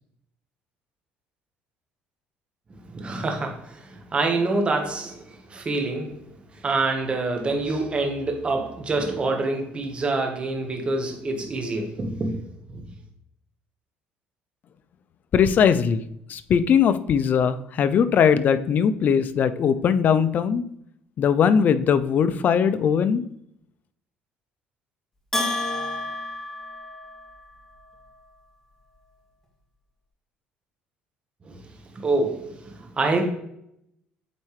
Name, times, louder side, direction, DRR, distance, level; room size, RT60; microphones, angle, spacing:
voice 1, 2.7-6.2 6.5-12.4 12.7-12.8 31.4-31.6 31.9-33.3, right 2 dB, 30° right, 1.4 m, -26 dB
voice 2, 15.3-16.0 16.3-20.7 21.2-23.2, left 7 dB, 45° left, 0.5 m, -20 dB
Bell, 25.3-27.5, left 1 dB, 10° left, 2.0 m, -30 dB
8.2 x 4.2 x 3.3 m
cardioid pair, 110°, 4 cm